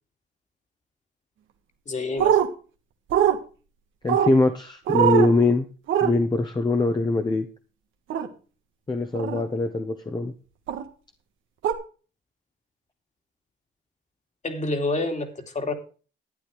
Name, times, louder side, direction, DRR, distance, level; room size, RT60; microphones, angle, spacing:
voice 1, 1.9-2.4 14.4-15.3 15.5-15.7, left 2 dB, 35° left, 5 dB, 2.8 m, -27 dB
sound 1, 2.2-2.5 3.1-3.4 4.1-4.3 4.9-5.3 5.9-6.1 8.1-8.3 9.1-9.4 10.7-10.8 11.6-11.7, right 9 dB, 80° right, 1.6 m, -21 dB
voice 2, 4.0-5.7 6.0-7.5 8.9-10.3, left 2 dB, 20° left, 4 dB, 1.3 m, -22 dB
12.0 x 8.9 x 4.8 m, 0.36 s
cardioid pair, 90°, 20 cm